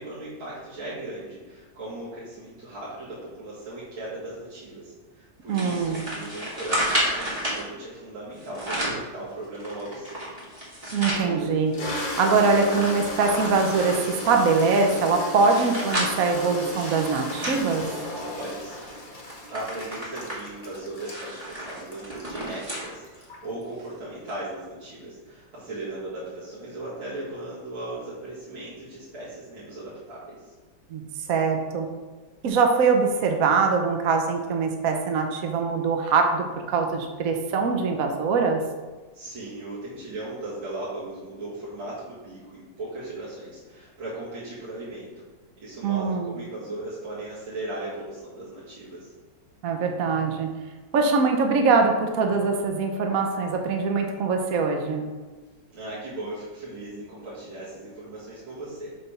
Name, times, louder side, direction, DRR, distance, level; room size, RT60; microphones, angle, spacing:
voice 1, 0.0-10.3 18.3-18.9 19.5-30.5 39.1-45.2 45.6-49.1 55.7-58.9, right 2 dB, 80° right, -11 dB, 2.7 m, -37 dB
sound 1, 5.5-7.6 8.4-9.1 9.5-11.3 11.7-11.8 12.1-14.1 14.7-18.4 18.8-19.0 19.3-22.9 23.3-23.4 24.3-24.4, equal, 20° right, 1.9 m, -31 dB
voice 2, 5.5-6.0 10.9-11.7 12.2-17.8 30.9-31.0 31.3-31.9 32.4-38.6 45.8-46.3 49.6-50.5 50.9-55.1, right 4 dB, 60° right, 3 dB, 1.0 m, -23 dB
Toilet flush, 10.4-10.5 11.1-23.6, left 1 dB, 30° left, 1.0 m, -35 dB
6.8 x 3.4 x 5.6 m, 1.3 s
omnidirectional pair, 2.2 m